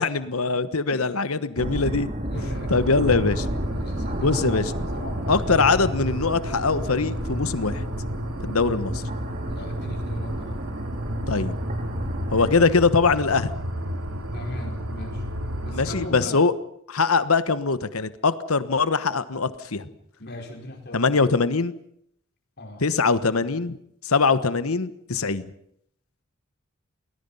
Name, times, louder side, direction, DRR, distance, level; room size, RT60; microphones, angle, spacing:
voice 1, 0.0-2.1 2.7-3.5 4.2-4.7 5.3-7.8 8.4-9.0 11.3-11.5 12.3-13.5 15.7-16.5 16.9-19.8 20.9-21.7 22.8-23.8 24.0-25.5, left 4 dB, 90° left, 13 dB, 1.2 m, -22 dB
sound 1, 1.6-12.5, right 1 dB, 35° right, 2.4 m, -32 dB
voice 2, 2.3-2.7 3.6-4.7 4.9-5.4 9.5-10.5 14.3-15.2 15.6-16.5 20.2-21.1 22.6-22.8, left 1 dB, 50° left, 2 dB, 4.8 m, -39 dB
sound 2, 2.4-16.1, equal, 85° right, 2.8 m, -32 dB
29.5 x 20.0 x 5.6 m, 0.71 s
head